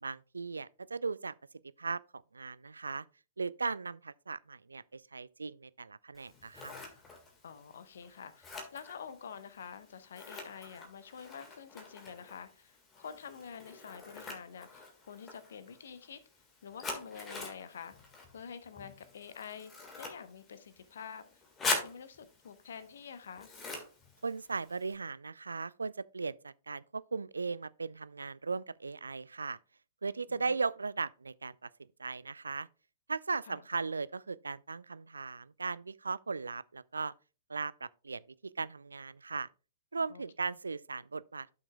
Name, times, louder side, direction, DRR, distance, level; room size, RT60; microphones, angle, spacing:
voice 1, 0.0-1.3 1.8-3.0 3.4-6.7 24.2-29.6 30.0-31.7 32.0-32.7 33.1-37.1 37.5-38.2 38.6-39.5 39.9-41.5, right 4 dB, 75° right, 0.3 m, -37 dB
Scissors, 6.2-24.9, left 3 dB, 15° left, 1.7 m, -44 dB
voice 2, 7.4-16.2 16.6-17.9 18.3-19.7 20.0-21.2 21.6-23.6 30.3-30.6 33.4-33.6 40.1-40.2, left 7 dB, 60° left, 0.9 m, -48 dB
12.0 x 5.9 x 2.3 m
figure-of-eight pair, 110°, 0 cm